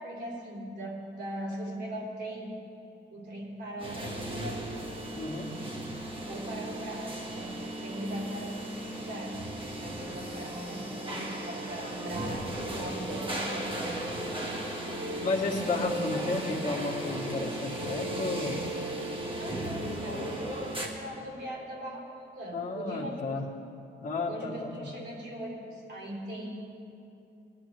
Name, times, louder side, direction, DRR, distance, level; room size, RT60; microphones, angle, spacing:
voice 1, 0.0-2.5 3.1-4.8 6.3-9.3 9.8-14.1 19.4-22.1 22.3-23.1 24.3-26.7, right 1 dB, 65° right, -4 dB, 3.1 m, -40 dB
sound 1, 3.8-20.9, right 1 dB, 30° right, 1.5 m, -36 dB
voice 2, 5.1-5.5 15.2-18.6 22.5-23.5 24.0-24.9, left 3 dB, 45° left, -1 dB, 1.4 m, -32 dB
20.5 x 9.9 x 3.3 m, 2.7 s
wide cardioid pair, 135°, 18 cm